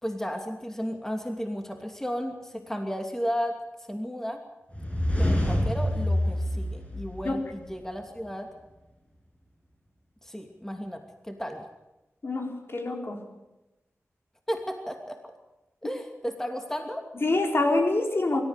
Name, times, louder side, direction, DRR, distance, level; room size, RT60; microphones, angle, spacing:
voice 1, 0.0-3.6 3.9-4.4 5.2-8.5 10.2-11.6 14.5-15.2 15.8-17.0, equal, 10° left, 4 dB, 2.7 m, -34 dB
sound 1, 4.7-7.7, left 1 dB, 25° left, 7.8 m, -27 dB
voice 2, 12.2-13.2 17.1-18.4, left 2 dB, 50° left, 2 dB, 4.3 m, -26 dB
24.0 x 14.0 x 8.3 m, 1.0 s
cardioid pair, 55°, 5 cm